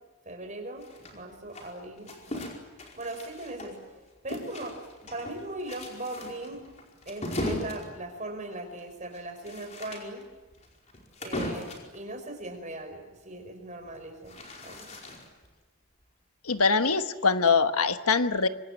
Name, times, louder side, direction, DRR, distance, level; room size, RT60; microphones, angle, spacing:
voice 1, 0.2-0.8 1.1-2.5 3.0-3.8 4.2-4.8 5.1-6.6 7.0-10.2 11.2-15.0, right 2 dB, 35° right, 5 dB, 5.2 m, -39 dB
sound 1, 0.8-3.9 4.3-12.0 13.8-15.5, left 1 dB, 30° left, 4.9 m, -38 dB
voice 2, 16.4-18.5, left 4 dB, 85° left, 9 dB, 1.4 m, -23 dB
26.0 x 25.0 x 9.2 m, 1.2 s
head